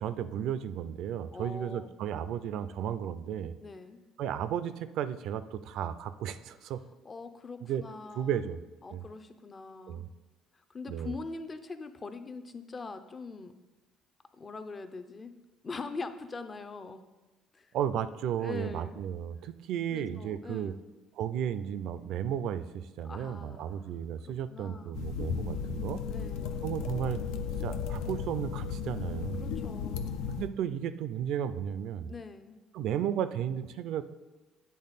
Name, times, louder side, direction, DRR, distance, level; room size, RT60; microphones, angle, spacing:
voice 1, 0.0-3.6 4.2-6.8 7.7-7.8 8.2-8.6 8.9-9.0 9.9-10.1 10.9-11.1 17.7-20.7 21.2-26.0 26.6-27.3 27.6-29.5 30.4-32.1 32.7-34.0, right 9 dB, 70° right, 13 dB, 0.4 m, -34 dB
voice 2, 1.3-1.9 3.6-4.0 7.0-8.5 8.8-10.0 10.7-13.5 14.4-15.3 15.6-17.0 17.5-17.7 18.3-19.0 19.9-20.8 23.0-23.8 24.2-25.0 26.1-26.5 29.4-30.1 32.1-32.6, left 3 dB, 30° left, 9 dB, 0.5 m, -43 dB
sound 1, 24.9-30.5, left 6 dB, 80° left, 0.4 m, -35 dB
8.6 x 3.4 x 4.1 m, 1.1 s
supercardioid pair, 80°, 0 cm